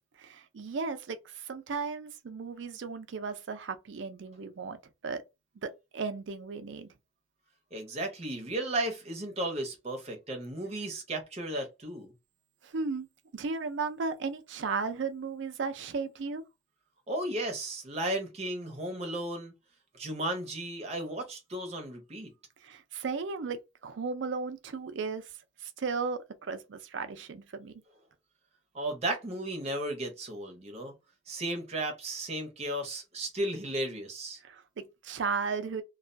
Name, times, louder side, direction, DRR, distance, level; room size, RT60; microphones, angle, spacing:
voice 1, 0.2-5.2 5.6-6.9 12.6-13.1 13.3-16.4 22.6-25.3 25.6-27.7 34.4-35.8, right 4 dB, 70° right, 0.4 m, -35 dB
voice 2, 7.7-12.1 17.1-19.5 19.9-22.3 28.7-30.9 31.3-34.4, right 1 dB, 35° right, 0.7 m, -34 dB
2.3 x 2.2 x 2.5 m
head